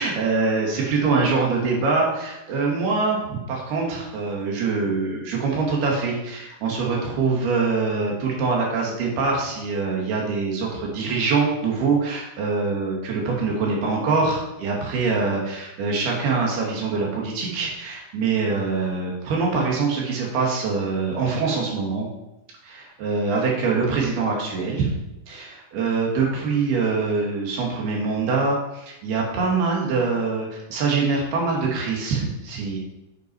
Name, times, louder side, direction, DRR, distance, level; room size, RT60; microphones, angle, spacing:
voice 1, 0.0-22.1 22.6-24.9 25.3-32.8, right 4 dB, 85° right, -2 dB, 4.3 m, -24 dB
9.1 x 8.8 x 4.8 m, 0.93 s
omnidirectional pair, 4.4 m